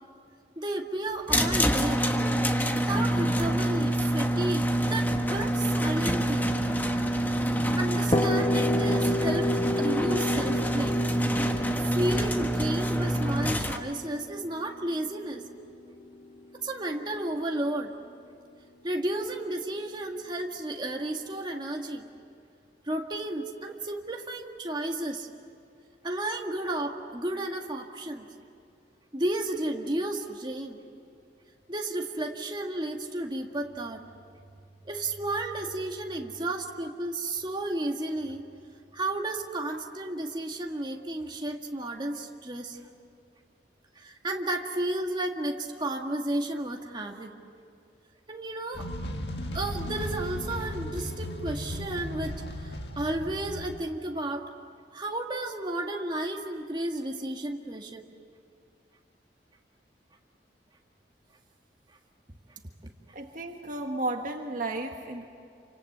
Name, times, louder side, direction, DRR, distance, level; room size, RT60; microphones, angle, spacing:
voice 1, 0.6-2.1 2.7-6.5 7.8-9.5 9.8-11.0 11.8-15.4 16.6-17.9 18.8-22.1 22.8-25.3 26.0-28.3 29.1-30.9 31.7-34.0 34.8-38.4 38.9-42.8 44.0-47.3 48.3-48.9 49.5-54.4 54.9-58.0, right 1 dB, 25° right, 1 dB, 1.9 m, -32 dB
sound 1, 1.3-13.8, equal, 10° left, 1.3 m, -26 dB
sound 2, 8.1-15.8, left 1 dB, 30° left, 1.5 m, -31 dB
sound 3, 48.7-53.8, left 1 dB, 65° left, 1.9 m, -36 dB
voice 2, 63.1-65.3, right 2 dB, 45° right, 3 dB, 1.5 m, -33 dB
29.0 x 26.0 x 8.0 m, 2.5 s
head